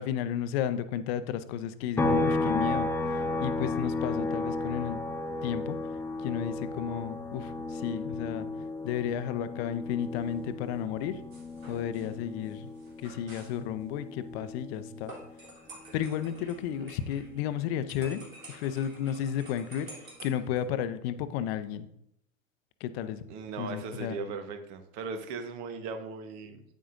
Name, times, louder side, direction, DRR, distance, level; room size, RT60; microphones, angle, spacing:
voice 1, 0.0-2.9 3.4-5.0 5.4-5.8 6.2-8.5 8.8-11.2 11.7-12.7 13.0-15.1 15.9-19.9 20.2-21.9 22.8-23.2 23.6-24.2, left 9 dB, 50° left, 12 dB, 0.8 m, -33 dB
sound 1, 2.0-15.5 15.9-18.1, left 2 dB, 5° left, 0.4 m, -34 dB
sound 2, 11.3-13.6 15.1-17.6 17.9-20.6, right 2 dB, 85° right, 3.2 m, -50 dB
voice 2, 23.3-26.6, right 4 dB, 45° right, 7 dB, 1.3 m, -38 dB
8.9 x 8.7 x 2.6 m, 0.76 s
hypercardioid pair, 95°, 40 cm